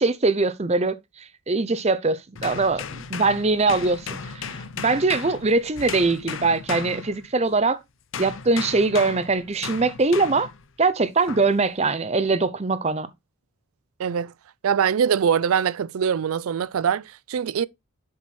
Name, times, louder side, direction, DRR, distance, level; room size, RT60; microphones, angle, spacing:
voice 1, 0.0-4.1 4.3-7.8 8.2-10.5 10.8-13.1, right 3 dB, 30° right, 0.6 m, -22 dB
sound 1, 2.4-7.6 8.1-10.6 11.3-11.6, left 6 dB, 60° left, 0.7 m, -35 dB
voice 2, 14.0-14.3 14.6-17.7, right 7 dB, 75° right, 0.4 m, -23 dB
7.3 x 4.6 x 4.2 m
head